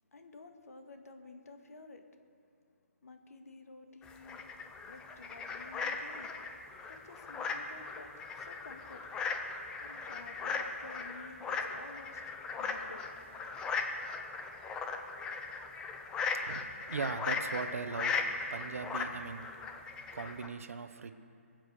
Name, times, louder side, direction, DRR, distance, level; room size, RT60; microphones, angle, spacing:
voice 1, 0.1-2.0 3.0-4.4 4.8-6.5 6.9-9.2 9.8-12.2 12.5-13.3, left 3 dB, 80° left, 6 dB, 1.9 m, -52 dB
sound 1, 4.0-20.5, left 4 dB, 10° left, 0.6 m, -38 dB
voice 2, 16.3-18.2 18.5-19.4 20.1-21.1, right 5 dB, 65° right, 10 dB, 1.1 m, -39 dB
23.5 x 8.0 x 6.5 m, 2.6 s
hypercardioid pair, 165°, 8 cm